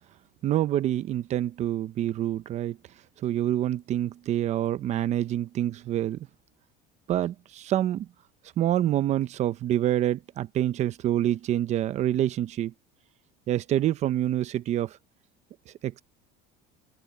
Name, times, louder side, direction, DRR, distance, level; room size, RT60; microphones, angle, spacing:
voice 1, 0.4-2.8 3.2-6.3 7.1-8.1 8.6-12.7 13.5-15.0 15.8-16.0, right 12 dB, 35° right, 0.7 m, -26 dB
open air
cardioid pair, 165°, 21 cm